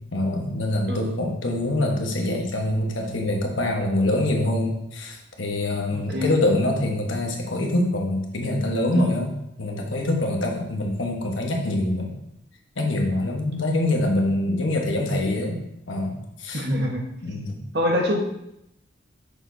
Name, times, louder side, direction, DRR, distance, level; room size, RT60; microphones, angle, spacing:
voice 1, 0.1-12.1 12.8-15.6 15.9-16.6 17.2-17.6, left 1 dB, 85° left, 1 dB, 1.2 m, -25 dB
voice 2, 0.9-1.2 5.9-6.4 8.9-9.1 16.5-17.0 17.7-18.2, left 1 dB, 55° right, 0 dB, 1.3 m, -25 dB
6.7 x 6.3 x 2.7 m, 0.81 s
head